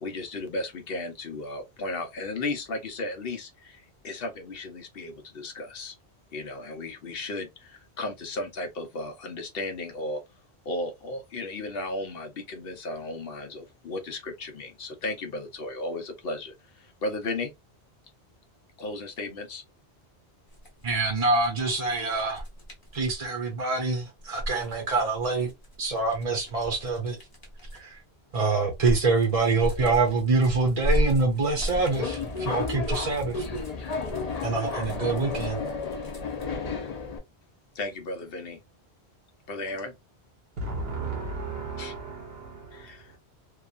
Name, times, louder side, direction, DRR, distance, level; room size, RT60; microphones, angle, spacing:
voice 1, 0.0-6.0 6.3-10.2 10.7-17.5 18.8-19.6 37.7-38.6 39.5-39.9 41.8-41.9 42.7-43.1, left 2 dB, 65° left, 0.9 m, -35 dB
sound 1, 20.5-23.3 24.2-28.0 28.4-36.5, right 1 dB, 20° left, 1.0 m, -34 dB
voice 2, 20.8-22.4 22.9-25.5 25.8-27.2 27.7-28.0 28.3-33.4 34.4-35.6, right 3 dB, 40° right, 0.7 m, -25 dB
Subway metro underground, 31.5-37.2, left 4 dB, 45° left, 0.6 m, -32 dB
voice 3, 40.6-43.2, right 3 dB, 75° right, 0.9 m, -35 dB
2.8 x 2.3 x 2.3 m
omnidirectional pair, 1.1 m